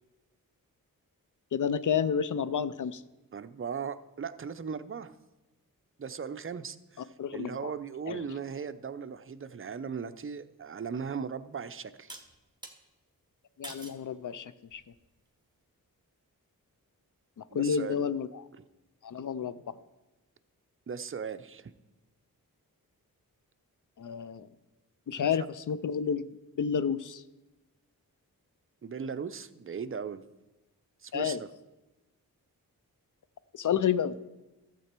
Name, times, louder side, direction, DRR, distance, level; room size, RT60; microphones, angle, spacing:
voice 1, 1.5-3.0 7.2-7.7 8.1-8.3 13.6-14.8 17.4-18.5 19.0-19.7 24.0-24.5 25.1-26.3 26.6-27.2 31.1-31.4 33.5-34.1, left 7 dB, 60° left, 15 dB, 0.5 m, -30 dB
voice 2, 3.3-5.1 6.0-12.2 17.5-18.1 20.9-21.7 25.1-25.5 28.8-30.2 31.0-31.5, right 6 dB, 35° right, 12 dB, 0.6 m, -38 dB
sound 1, 12.1-12.8 13.6-14.0 14.7-15.1, right 2 dB, 10° right, 1.4 m, -46 dB
12.5 x 7.5 x 4.5 m, 1.1 s
cardioid pair, 55°, 36 cm